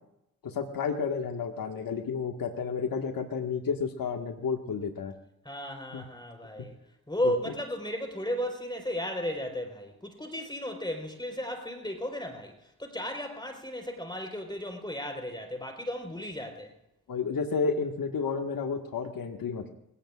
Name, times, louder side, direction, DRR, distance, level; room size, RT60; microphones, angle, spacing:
voice 1, 0.4-5.1 5.9-6.0 7.2-7.3 17.1-19.7, left 5 dB, 55° left, 4 dB, 1.8 m, -31 dB
voice 2, 5.4-6.7 7.1-16.7, equal, 10° left, 3 dB, 4.4 m, -34 dB
27.5 x 17.5 x 2.5 m, 0.81 s
hypercardioid pair, 40°, 40 cm